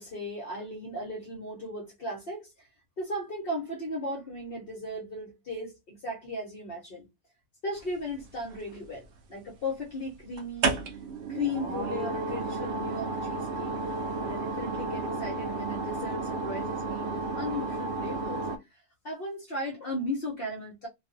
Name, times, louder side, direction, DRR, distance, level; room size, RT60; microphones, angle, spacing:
voice 1, 0.0-2.7 3.0-7.1 7.6-10.8 11.3-13.7 14.2-20.9, left 1 dB, 55° left, 0.7 m, -36 dB
sound 1, 8.2-9.0 10.4-18.6, right 3 dB, 80° right, 0.6 m, -32 dB
2.4 x 2.4 x 2.5 m
omnidirectional pair, 1.7 m